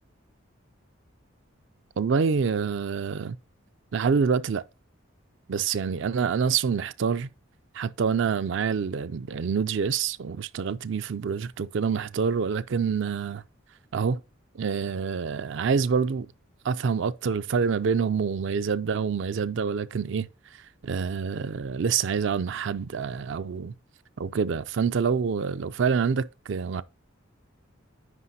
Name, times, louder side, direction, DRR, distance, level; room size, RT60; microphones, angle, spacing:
voice 1, 2.0-3.4 3.9-4.6 5.5-7.3 7.7-13.4 13.9-14.2 14.5-16.3 16.6-23.7 24.2-26.8, right 6 dB, 60° right, 0.4 m, -27 dB
9.7 x 5.2 x 2.7 m
head